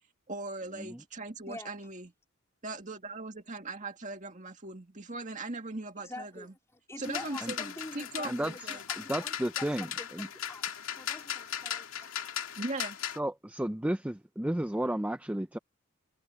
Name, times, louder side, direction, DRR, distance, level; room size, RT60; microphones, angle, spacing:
voice 1, 0.3-2.1 2.6-6.5 7.0-8.8 12.6-13.0, right 2 dB, 35° right, 2.1 m, -39 dB
voice 2, 6.0-10.6 10.9-12.1, left 1 dB, 15° left, 3.7 m, -46 dB
sound 1, 7.0-13.2, left 9 dB, 75° left, 2.1 m, -38 dB
voice 3, 8.2-8.8 9.1-9.9 10.1-10.3 13.2-15.6, right 1 dB, 5° right, 0.5 m, -32 dB
head